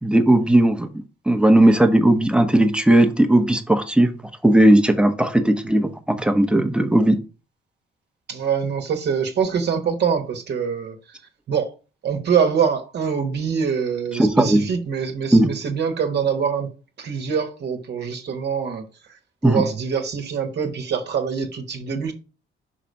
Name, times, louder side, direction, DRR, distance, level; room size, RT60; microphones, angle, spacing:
voice 1, 0.0-4.1 4.4-7.2 14.2-14.7 15.3-15.5 19.4-19.6, right 1 dB, 5° right, 0.9 m, -17 dB
voice 2, 8.3-11.0 11.5-11.7 12.0-16.7 17.0-18.8 19.4-22.1, right 6 dB, 60° right, 1.1 m, -24 dB
5.9 x 3.3 x 5.2 m
cardioid pair, 90°, 20 cm